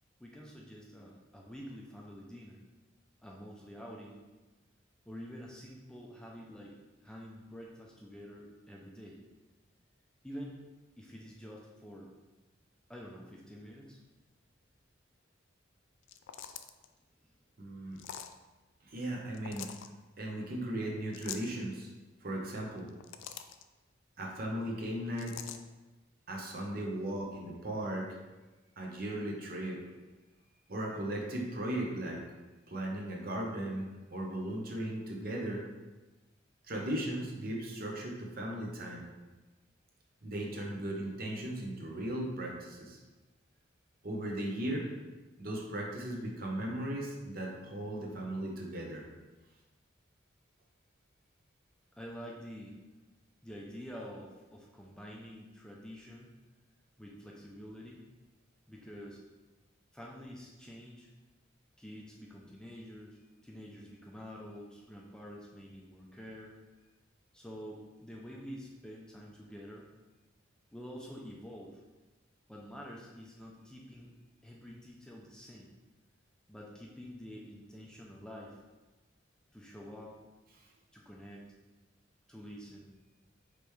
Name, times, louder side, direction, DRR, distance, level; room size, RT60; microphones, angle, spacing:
voice 1, 0.2-2.6 3.2-4.2 5.1-9.2 10.2-10.6 11.0-12.1 12.9-14.0 26.8-27.0 52.0-52.8 53.4-56.3 57.0-58.0 58.7-59.2 59.9-61.1 61.8-66.5 67.3-69.9 70.7-71.8 72.5-74.1 74.4-75.7 76.5-78.6 79.5-80.2 80.9-81.5 82.3-82.9, equal, 5° left, -2 dB, 0.5 m, -48 dB
sound 1, 16.0-16.9 18.0-18.4 19.3-19.9 21.1-21.5 22.8-23.6 25.2-25.6, left 9 dB, 70° left, 0.3 m, -44 dB
voice 2, 17.6-18.0 18.8-19.7 20.2-21.9 22.2-22.9 24.2-25.4 26.3-28.2 28.8-29.8 30.7-32.2 32.7-35.6 36.7-39.0 40.2-43.0 44.0-44.9 45.4-49.1, right 1 dB, 50° right, -1 dB, 0.8 m, -37 dB
5.1 x 3.3 x 3.1 m, 1.2 s
head